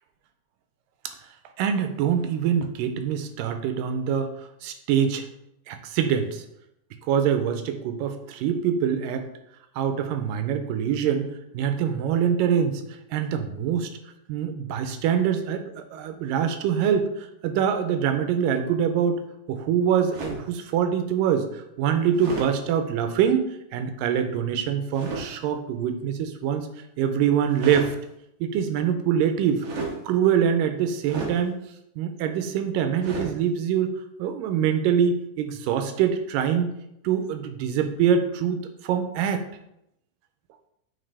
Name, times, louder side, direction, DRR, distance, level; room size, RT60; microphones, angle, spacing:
voice 1, 1.6-4.3 4.6-5.3 5.7-6.4 7.1-9.3 9.8-12.8 13.1-13.9 14.3-19.2 19.5-26.7 27.0-28.0 28.4-29.7 30.1-31.6 32.0-33.9 34.2-36.7 37.0-39.4, right 8 dB, 85° right, 7 dB, 2.3 m, -24 dB
sound 1, 20.1-20.5 22.1-22.5 24.9-25.3 27.4-27.9 29.6-30.0 31.0-31.4 33.0-33.3, right 3 dB, 55° right, 1.8 m, -32 dB
8.8 x 4.0 x 3.4 m, 0.80 s
omnidirectional pair, 3.9 m